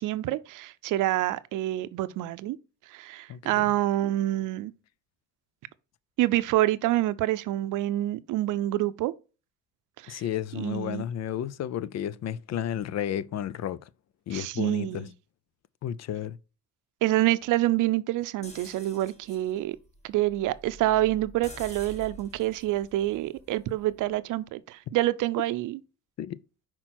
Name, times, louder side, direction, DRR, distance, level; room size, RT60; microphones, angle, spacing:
voice 1, 0.0-2.6 2.9-4.7 6.2-9.1 10.0-10.2 10.5-11.0 14.3-15.1 17.0-19.8 20.0-25.8, right 15 dB, 85° right, 0.6 m, -27 dB
voice 2, 3.3-3.6 10.1-13.8 14.3-15.1 15.8-16.4 26.2-26.4, left 10 dB, 60° left, 0.5 m, -32 dB
sound 1, 18.4-24.2, equal, 20° left, 2.0 m, -48 dB
6.0 x 4.4 x 4.3 m
cardioid pair, 90°, 30 cm